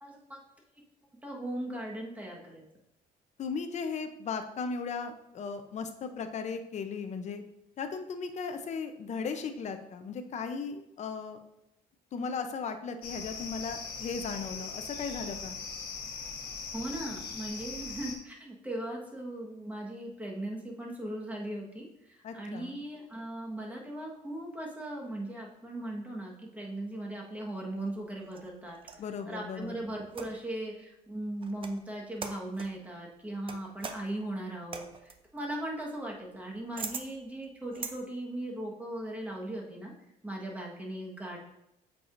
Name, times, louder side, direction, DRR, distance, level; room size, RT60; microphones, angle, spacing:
voice 1, 0.0-0.4 1.2-2.7 16.7-28.8 29.2-39.9 40.2-41.4, right 1 dB, 10° right, -2 dB, 1.4 m, -38 dB
voice 2, 3.4-7.4 7.8-11.4 12.1-15.6 22.2-22.8 29.0-29.8, left 5 dB, 45° left, 8 dB, 0.6 m, -36 dB
sound 1, 13.0-18.2, left 5 dB, 65° left, 1.2 m, -40 dB
sound 2, 27.8-29.1 30.1-30.6 31.4-31.8 32.2-32.8 33.5-38.0, right 5 dB, 30° right, 0.6 m, -43 dB
7.7 x 4.7 x 2.6 m, 0.84 s
cardioid pair, 110°, 17 cm